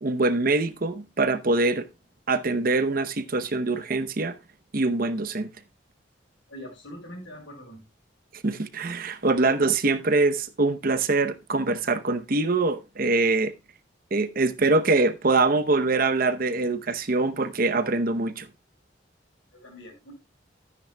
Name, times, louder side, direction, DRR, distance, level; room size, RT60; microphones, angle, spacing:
voice 1, 0.0-1.9 2.3-4.3 4.7-5.5 8.3-13.5 14.1-18.5, right 3 dB, 50° right, 0.8 m, -24 dB
voice 2, 6.5-7.8 19.5-20.1, equal, 85° left, 5.3 m, -43 dB
13.5 x 9.6 x 2.2 m
head